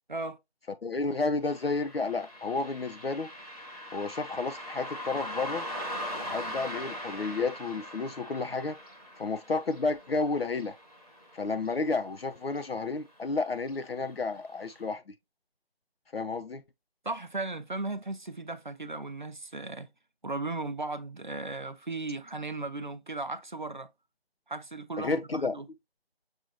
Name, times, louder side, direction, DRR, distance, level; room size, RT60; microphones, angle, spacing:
voice 1, 0.8-3.3 3.9-5.7 6.1-8.8 9.2-10.7 11.3-15.1 16.1-16.6 25.0-25.6, left 3 dB, 65° left, 0.5 m, -31 dB
Car passing by, 1.4-12.3 12.5-12.6 13.6-13.8 14.2-14.3 14.8-14.9, equal, 35° left, 1.2 m, -41 dB
voice 2, 17.0-19.9 20.2-23.9 24.5-25.7, right 2 dB, 50° right, 0.5 m, -36 dB
6.3 x 2.6 x 2.8 m
figure-of-eight pair, 175°, 32 cm